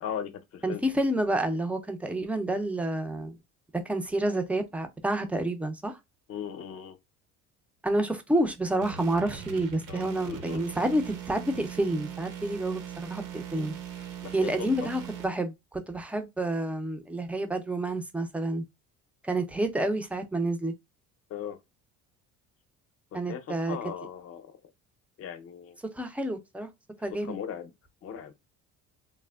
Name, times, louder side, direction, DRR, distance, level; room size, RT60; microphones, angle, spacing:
voice 1, 0.0-0.8 6.3-7.0 9.9-10.6 14.2-14.5 14.8-14.9 21.3-21.6 23.3-24.6 25.2-25.8 27.2-27.7 28.0-28.3, left 8 dB, 45° left, 0.6 m, -38 dB
voice 2, 0.6-3.4 3.7-6.0 7.8-13.8 14.3-15.5 15.9-18.6 19.2-20.7 23.1-23.8 25.9-26.7 27.0-27.4, right 1 dB, 5° right, 0.3 m, -29 dB
sound 1, 8.8-15.3, right 9 dB, 70° right, 0.7 m, -40 dB
3.2 x 2.0 x 2.2 m
cardioid pair, 105°, 32 cm